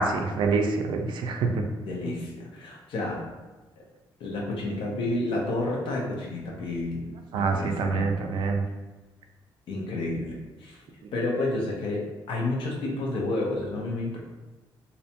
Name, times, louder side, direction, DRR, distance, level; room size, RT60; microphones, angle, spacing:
voice 1, 0.0-1.5 7.3-8.6, right 4 dB, 65° right, 3 dB, 0.3 m, -26 dB
voice 2, 1.8-3.3 3.8-3.9 4.2-8.1 9.7-10.8 11.1-14.2, left 2 dB, 80° left, -1 dB, 0.6 m, -30 dB
2.6 x 2.1 x 2.8 m, 1.2 s
cardioid pair, 175°, 9 cm